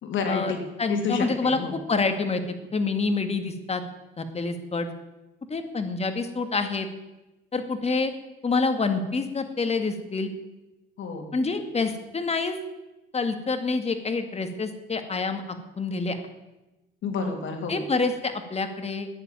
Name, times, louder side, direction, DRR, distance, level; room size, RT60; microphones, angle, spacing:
voice 1, 0.0-0.6 0.9-1.8 11.0-11.3 17.0-17.8, left 5 dB, 75° left, 4 dB, 2.9 m, -29 dB
voice 2, 0.8-2.4 2.7-3.8 4.2-4.9 5.5-6.9 7.5-8.1 8.4-10.3 11.3-12.6 13.1-15.4 15.8-16.2 17.7-19.1, left 4 dB, 30° left, 7 dB, 2.1 m, -27 dB
13.5 x 10.0 x 9.1 m, 1.0 s
cardioid pair, 90°, 20 cm